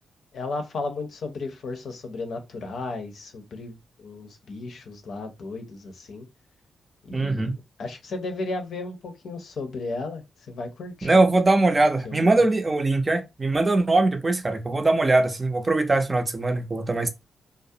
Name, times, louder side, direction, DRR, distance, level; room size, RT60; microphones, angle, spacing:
voice 1, 0.3-6.3 7.0-7.5 7.8-11.3 12.0-12.4, left 3 dB, 75° left, 0.6 m, -34 dB
voice 2, 7.1-7.5 11.0-17.1, right 2 dB, 30° right, 0.5 m, -21 dB
2.4 x 2.0 x 2.6 m
supercardioid pair, 55°, 0 cm